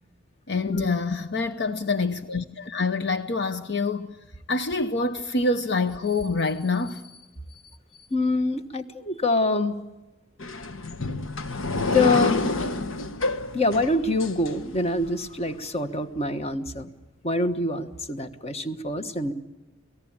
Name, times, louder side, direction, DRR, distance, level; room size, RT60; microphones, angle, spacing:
voice 1, 0.5-4.2 4.5-7.2 7.5-7.6, left 3 dB, 60° left, 0.9 m, -26 dB
voice 2, 8.1-9.8 11.9-12.5 13.5-16.9 17.2-19.3, left 2 dB, 30° left, 1.3 m, -25 dB
sound 1, 10.4-15.1, left 2 dB, 85° left, 1.2 m, -28 dB
29.0 x 18.5 x 8.8 m
head